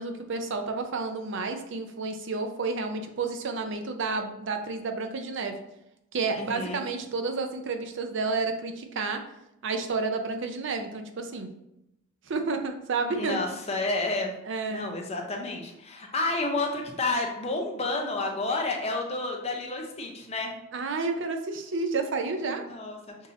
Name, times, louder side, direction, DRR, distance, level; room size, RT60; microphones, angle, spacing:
voice 1, 0.0-5.6 6.1-9.2 9.6-11.5 12.3-13.4 14.5-14.9 20.7-22.6, right 4 dB, 60° right, 6 dB, 0.5 m, -30 dB
voice 2, 6.3-6.8 13.1-14.3 14.7-20.5 22.4-23.0, left 2 dB, 30° left, 1 dB, 0.7 m, -30 dB
5.9 x 2.7 x 2.7 m, 0.85 s
head